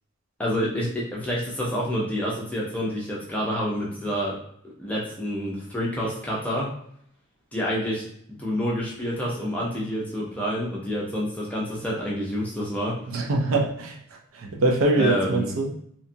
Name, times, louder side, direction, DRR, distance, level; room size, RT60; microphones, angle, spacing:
voice 1, 0.4-4.4 4.8-6.7 7.5-12.9 15.0-15.5, equal, 5° left, -5 dB, 0.5 m, -28 dB
voice 2, 13.1-13.9 14.5-15.7, right 2 dB, 65° right, 1 dB, 0.5 m, -23 dB
2.8 x 2.3 x 2.6 m, 0.67 s
head